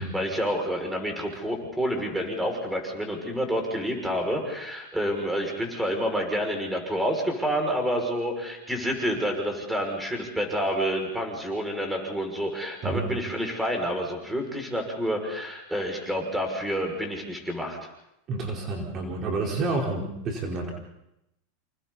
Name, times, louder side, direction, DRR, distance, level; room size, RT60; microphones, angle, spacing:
voice 1, 0.0-17.8, equal, 5° right, 3 dB, 6.4 m, -28 dB
voice 2, 18.3-20.7, right 3 dB, 40° right, 0 dB, 4.6 m, -29 dB
28.5 x 28.0 x 4.2 m, 0.85 s
hypercardioid pair, 120°, 0 cm